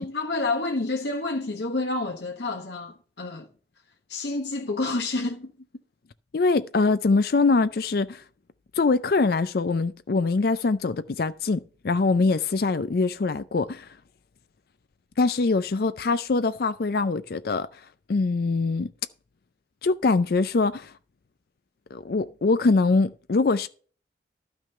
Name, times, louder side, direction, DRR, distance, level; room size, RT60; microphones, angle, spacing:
voice 1, 0.0-3.5 4.1-5.5, left 2 dB, 70° left, 1.2 m, -29 dB
voice 2, 6.3-8.2 8.7-13.9 15.2-17.7 18.1-18.9 19.8-20.9 21.9-23.7, left 3 dB, 55° left, 0.4 m, -23 dB
12.5 x 6.1 x 5.6 m
head